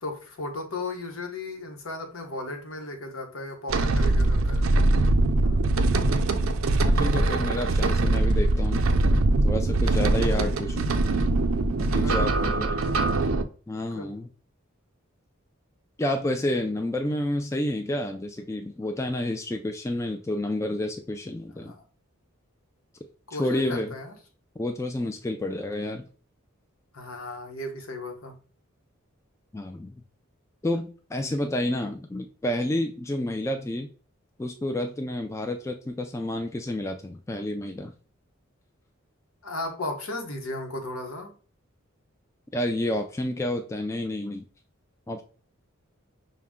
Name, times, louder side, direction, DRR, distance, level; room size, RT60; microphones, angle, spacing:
voice 1, 0.0-4.7 5.4-5.6 9.9-10.1 11.9-12.8 13.9-14.1 21.6-21.8 23.3-24.1 26.9-28.3 39.4-41.3, left 2 dB, 75° left, 3 dB, 1.0 m, -35 dB
sound 1, 3.7-13.4, right 2 dB, 75° right, 0.5 m, -22 dB
voice 2, 6.8-8.8 9.4-10.9 11.8-12.7 13.7-14.3 16.0-21.7 23.4-23.9 24.6-26.0 29.5-30.0 30.6-33.9 34.4-37.9 42.5-44.4 45.1-45.2, left 1 dB, 15° left, 5 dB, 0.3 m, -29 dB
5.7 x 2.1 x 3.6 m, 0.40 s
head